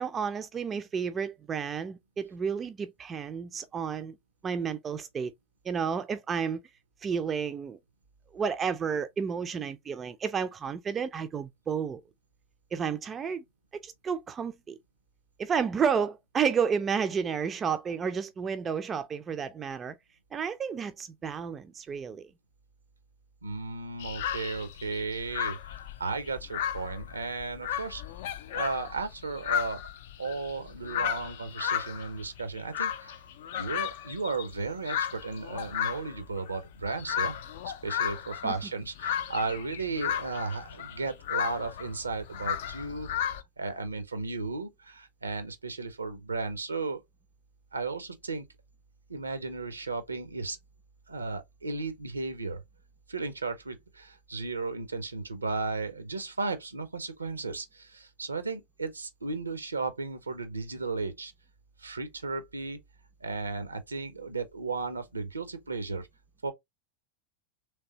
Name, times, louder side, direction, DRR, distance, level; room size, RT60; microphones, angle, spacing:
voice 1, 0.0-4.1 4.4-5.3 5.6-6.6 7.0-7.8 8.3-12.0 12.7-13.4 13.8-14.8 15.4-20.0 20.3-22.3 38.4-38.5, right 6 dB, 20° right, 0.4 m, -31 dB
voice 2, 23.4-25.6 26.0-28.0 28.5-29.8 30.2-33.2 33.6-37.4 37.6-43.1 43.6-47.0 47.7-48.5 49.1-50.6 51.1-52.6 53.1-61.3 61.8-62.8 63.2-66.1 66.4-66.5, right 3 dB, 80° right, 0.7 m, -35 dB
sound 1, 24.0-43.4, left 9 dB, 55° left, 0.4 m, -34 dB
3.3 x 3.2 x 2.8 m
figure-of-eight pair, 90°, 0 cm